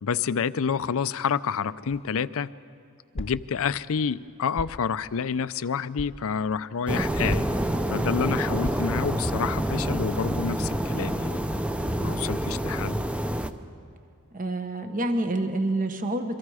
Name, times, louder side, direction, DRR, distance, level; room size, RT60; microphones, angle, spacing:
voice 1, 0.0-2.5 3.1-7.4 7.9-11.4 12.0-13.0, left 6 dB, 70° left, 16 dB, 0.5 m, -28 dB
sound 1, 1.9-2.3 3.1-3.5 4.6-4.9 6.0-6.2 7.3-7.8 8.6-9.1, left 1 dB, 30° left, 0.9 m, -36 dB
sound 2, 6.9-13.5, right 1 dB, 5° right, 0.7 m, -27 dB
voice 2, 14.3-16.4, right 1 dB, 40° right, 7 dB, 1.1 m, -27 dB
27.5 x 23.5 x 4.9 m, 2.4 s
head